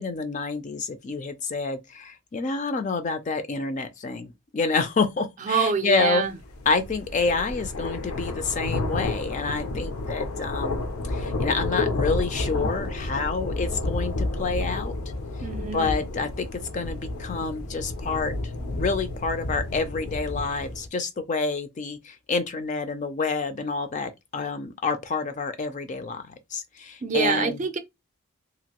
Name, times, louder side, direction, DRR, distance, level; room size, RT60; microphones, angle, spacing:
voice 1, 0.0-6.2 6.7-14.9 15.7-18.3 18.7-26.2 26.5-27.6, left 4 dB, 35° left, 0.3 m, -28 dB
voice 2, 5.4-6.3 15.4-16.0 27.0-27.8, right 5 dB, 35° right, 0.4 m, -25 dB
sound 1, 6.4-20.9, left 2 dB, 85° left, 0.6 m, -30 dB
2.9 x 2.5 x 2.8 m
head